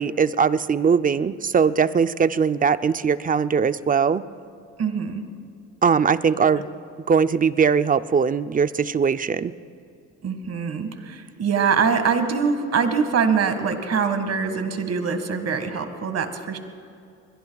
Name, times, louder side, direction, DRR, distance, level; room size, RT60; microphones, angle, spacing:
voice 1, 0.0-4.2 5.8-6.6 7.1-9.5, right 6 dB, 25° right, 13 dB, 0.5 m, -20 dB
voice 2, 4.8-5.2 6.3-6.5 10.2-16.6, right 6 dB, 45° right, 7 dB, 1.9 m, -23 dB
28.0 x 21.5 x 2.4 m, 2.5 s
supercardioid pair, 85°, 34 cm